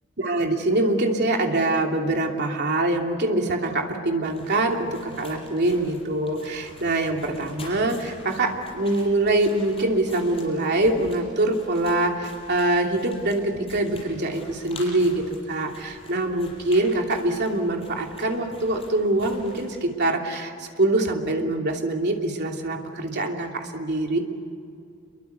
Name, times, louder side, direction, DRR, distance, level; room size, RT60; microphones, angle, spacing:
voice 1, 0.2-24.2, right 2 dB, 55° right, 2 dB, 2.9 m, -24 dB
sound 1, 4.2-19.8, left 2 dB, 30° left, 6.8 m, -46 dB
28.0 x 23.0 x 6.9 m, 2.4 s
head